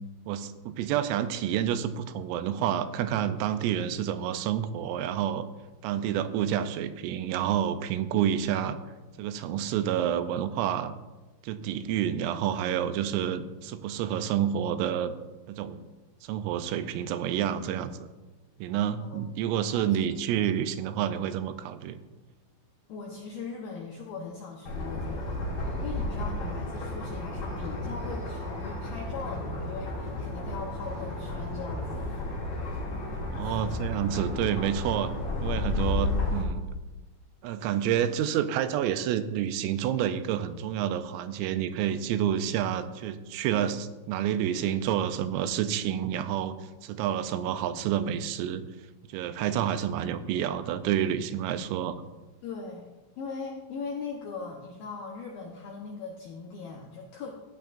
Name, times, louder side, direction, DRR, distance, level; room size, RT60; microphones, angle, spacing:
voice 1, 0.3-5.5 5.8-8.8 9.2-10.9 11.4-15.1 15.5-15.8 16.2-17.9 18.6-22.0 33.3-35.1 35.4-36.6 37.4-46.6 46.8-48.6 49.1-52.0, right 10 dB, 90° right, 10 dB, 3.3 m, -29 dB
voice 2, 19.0-19.9 22.9-25.5 25.8-32.1 33.4-33.8 52.4-57.3, left 4 dB, 80° left, -1 dB, 2.1 m, -40 dB
sound 1, 24.6-36.4, left 2 dB, 40° left, 3.1 m, -32 dB
15.5 x 10.5 x 2.6 m, 1.1 s
omnidirectional pair, 5.7 m